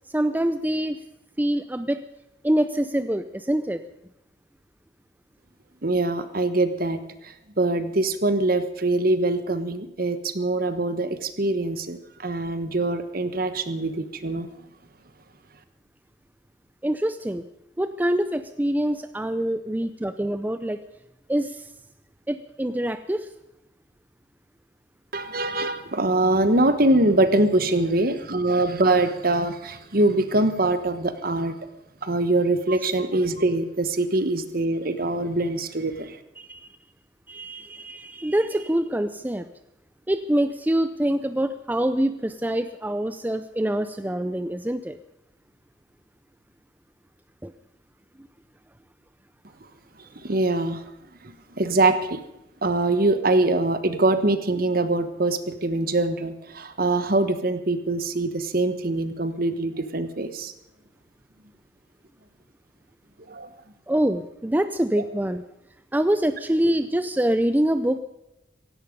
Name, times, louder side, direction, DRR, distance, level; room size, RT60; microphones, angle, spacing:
voice 1, 0.1-1.0 1.4-2.0 2.4-3.8 16.8-17.4 17.8-20.8 21.3-21.6 22.3-23.3 36.4-36.7 37.3-39.5 40.1-45.0 47.4-47.5 63.9-65.4 65.9-68.0, right 1 dB, 10° right, 11 dB, 0.5 m, -25 dB
voice 2, 5.8-14.5 25.1-31.5 32.0-36.2 50.2-50.9 51.2-52.2 52.6-60.5 63.3-63.5, right 2 dB, 50° right, 11 dB, 1.3 m, -23 dB
16.5 x 16.0 x 5.3 m, 0.90 s
head